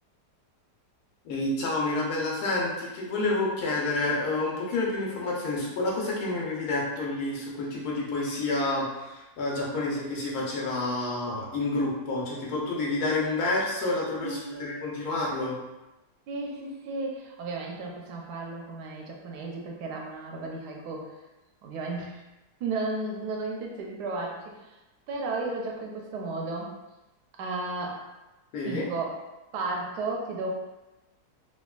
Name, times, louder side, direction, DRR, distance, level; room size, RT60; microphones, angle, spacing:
voice 1, 1.2-15.5 28.5-28.8, left 2 dB, 70° left, -4 dB, 1.2 m, -29 dB
voice 2, 14.2-14.9 16.3-21.1 21.6-22.2 22.6-24.8 25.1-26.7 27.4-28.0 28.6-29.1 29.5-30.5, right 3 dB, 85° right, 0 dB, 1.2 m, -34 dB
3.4 x 2.2 x 2.3 m, 1.0 s
omnidirectional pair, 1.7 m